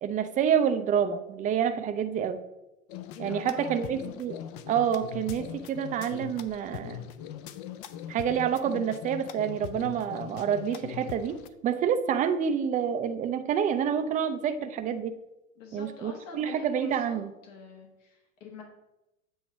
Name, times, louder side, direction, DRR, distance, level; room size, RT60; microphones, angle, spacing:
voice 1, 0.0-2.4 3.2-7.1 8.1-15.2 15.7-17.3, right 8 dB, 20° right, 9 dB, 0.5 m, -28 dB
sound 1, 2.9-11.5, left 10 dB, 40° left, 0.5 m, -41 dB
voice 2, 3.1-4.0 15.6-17.2 17.4-18.6, left 5 dB, 65° left, 1 dB, 1.6 m, -44 dB
7.8 x 2.9 x 6.2 m, 0.95 s
hypercardioid pair, 95°, 40 cm